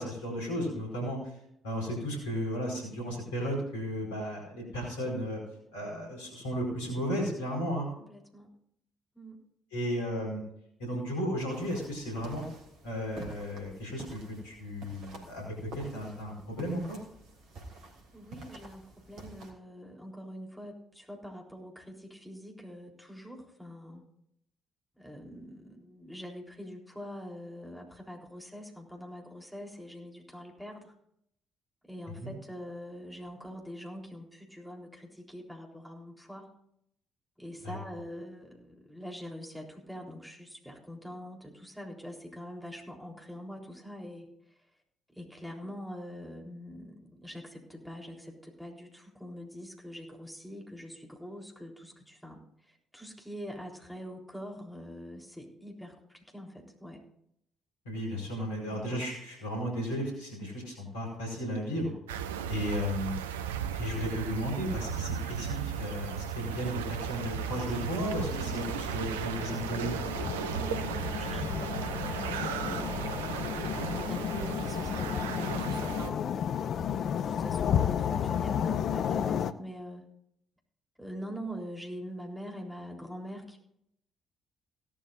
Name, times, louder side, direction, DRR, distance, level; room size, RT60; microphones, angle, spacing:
voice 1, 0.0-1.3 1.6-5.4 5.7-7.9 9.7-10.4 10.8-12.4 12.8-14.2 14.4-15.4 15.7-17.0 32.2-32.3 37.6-37.8 57.8-61.9 62.5-63.2 63.7-69.9, equal, 75° left, 0 dB, 4.8 m, -34 dB
voice 2, 8.0-8.5 9.1-9.4 18.1-24.0 25.0-30.9 31.9-36.5 37.4-44.3 45.1-57.0 58.7-59.0 68.4-68.9 70.5-73.0 73.9-76.6 77.2-80.1 81.0-83.6, equal, ahead, 0 dB, 3.8 m, -44 dB
sound 1, 11.5-19.5, right 2 dB, 60° right, 2.9 m, -49 dB
sound 2, 62.1-76.1, right 8 dB, 75° right, 0.6 m, -36 dB
sound 3, 67.2-79.5, left 8 dB, 55° left, 0.6 m, -33 dB
17.5 x 12.0 x 2.6 m, 0.74 s
figure-of-eight pair, 45°, 0 cm